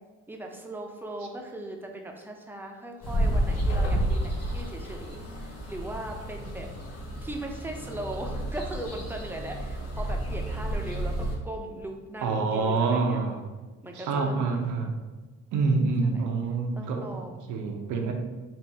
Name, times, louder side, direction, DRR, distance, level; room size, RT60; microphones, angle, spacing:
voice 1, 0.3-6.7 7.2-13.2 13.8-14.6 15.5-16.2 16.7-17.5, right 1 dB, 5° right, 1 dB, 0.7 m, -39 dB
sound 1, 3.0-11.4, right 1 dB, 55° left, 1.2 m, -30 dB
voice 2, 12.2-13.4 13.9-14.9 15.5-17.2 17.5-18.1, right 4 dB, 80° right, 3 dB, 0.8 m, -26 dB
4.2 x 2.6 x 4.6 m, 1.3 s
cardioid pair, 90°, 30 cm